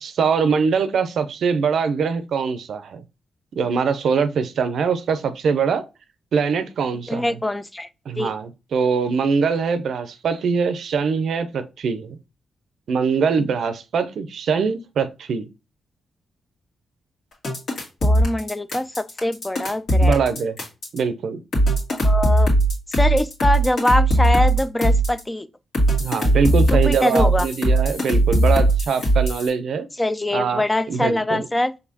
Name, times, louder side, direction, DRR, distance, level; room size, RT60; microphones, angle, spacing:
voice 1, 0.0-3.0 3.5-5.9 6.3-7.4 8.1-12.2 12.9-15.5 20.0-20.6 20.9-21.4 26.0-29.9 30.3-31.5, right 5 dB, 75° right, 0.5 m, -23 dB
voice 2, 7.1-7.9 8.2-8.3 18.0-18.9 19.2-20.2 21.9-22.5 23.0-25.5 26.7-27.5 30.0-31.7, left 1 dB, 20° left, 0.4 m, -23 dB
sound 1, 17.4-21.0 21.5-25.2 25.7-29.5, right 1 dB, 70° left, 2.0 m, -19 dB
4.9 x 3.2 x 2.7 m
supercardioid pair, 50°, 0 cm